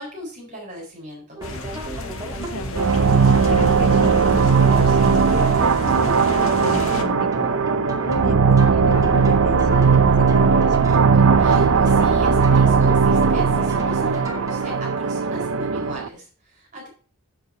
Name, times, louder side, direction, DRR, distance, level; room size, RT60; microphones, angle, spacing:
voice 1, 0.0-1.4 11.4-16.9, equal, 35° right, -2 dB, 4.2 m, -37 dB
sound 1, 1.4-7.0, left 2 dB, 65° left, 1.4 m, -33 dB
sound 2, 1.4-14.8, right 2 dB, 15° right, 2.4 m, -33 dB
voice 2, 2.4-3.0 3.2-5.6 5.9-7.5 8.0-10.9, left 2 dB, 90° left, 10 dB, 1.1 m, -33 dB
sound 3, 2.7-16.1, right 5 dB, 65° right, 0.7 m, -18 dB
7.6 x 6.9 x 5.5 m, 0.40 s
head